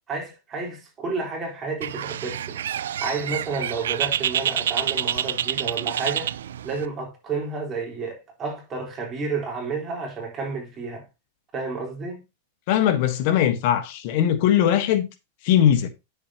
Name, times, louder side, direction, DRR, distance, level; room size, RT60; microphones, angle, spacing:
voice 1, 0.1-2.6 3.0-6.3 6.6-11.0 11.5-12.2, right 4 dB, 25° right, 4.1 m, -31 dB
Bird, 1.8-6.9, right 10 dB, 90° right, 0.4 m, -27 dB
voice 2, 12.7-15.1 15.4-15.9, left 10 dB, 55° left, 1.3 m, -20 dB
9.8 x 7.2 x 2.9 m
supercardioid pair, 140°, 0 cm